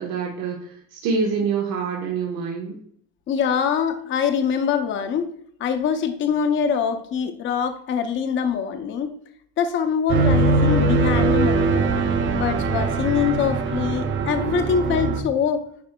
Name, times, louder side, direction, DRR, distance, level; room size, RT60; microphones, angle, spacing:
voice 1, 0.0-2.8, right 5 dB, 85° right, -2 dB, 1.2 m, -26 dB
voice 2, 3.3-5.3 5.6-9.1 9.6-11.9 12.3-15.6, left 7 dB, 35° left, 7 dB, 0.6 m, -24 dB
sound 1, 10.1-15.2, right 3 dB, 35° right, 0.7 m, -21 dB
9.3 x 4.7 x 2.2 m, 0.65 s
cardioid pair, 150°, 32 cm